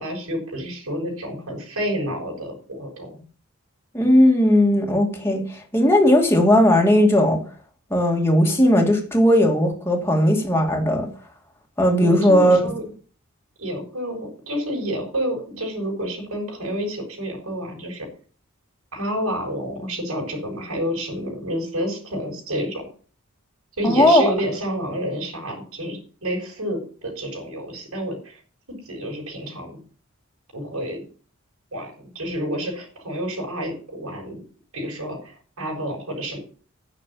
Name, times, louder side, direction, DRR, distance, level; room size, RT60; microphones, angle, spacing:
voice 1, 0.0-3.2 12.0-12.8 13.6-18.1 18.9-22.9 23.8-28.4 28.7-29.7 30.5-31.0 31.7-34.4 34.7-36.4, equal, 80° right, 5.6 m, -29 dB
voice 2, 3.9-7.4 7.9-11.1 11.8-12.6 23.8-24.3, equal, 10° left, 2.5 m, -17 dB
10.0 x 6.7 x 8.5 m
head